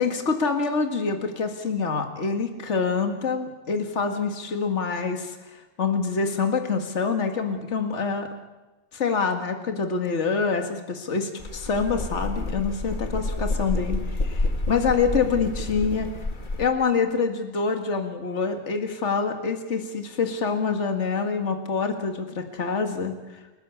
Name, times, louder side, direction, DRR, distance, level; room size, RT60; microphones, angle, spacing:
voice 1, 0.0-8.3 8.9-16.1 16.6-23.4, left 5 dB, 50° left, 5 dB, 2.2 m, -26 dB
sound 1, 11.4-16.6, left 2 dB, 35° left, 1.6 m, -29 dB
29.0 x 14.0 x 8.5 m, 1.1 s
omnidirectional pair, 1.5 m